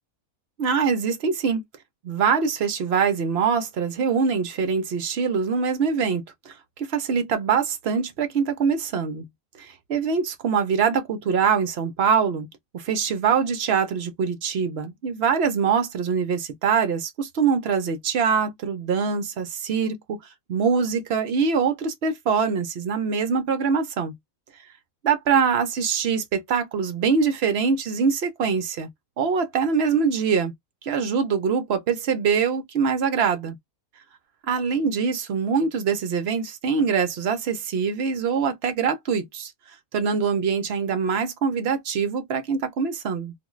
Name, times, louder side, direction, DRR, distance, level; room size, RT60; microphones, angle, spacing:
voice 1, 0.6-1.6 2.0-9.3 9.6-12.5 12.7-20.2 20.5-24.1 25.0-28.9 29.2-30.5 30.8-33.6 34.5-39.5 39.9-43.3, right 6 dB, 60° right, 0.7 m, -23 dB
2.5 x 2.3 x 3.0 m
omnidirectional pair, 1.5 m